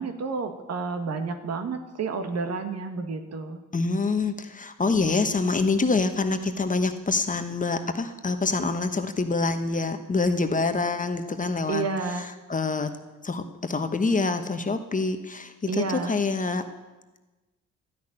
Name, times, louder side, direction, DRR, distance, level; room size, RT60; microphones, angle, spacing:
voice 1, 0.0-3.6 11.7-12.3 15.7-16.1, right 4 dB, 55° right, 7 dB, 1.6 m, -30 dB
voice 2, 3.7-11.8 12.1-12.9 13.2-16.6, left 3 dB, 25° left, 8 dB, 1.1 m, -26 dB
12.5 x 6.5 x 9.9 m, 1.2 s
cardioid pair, 90°, 30 cm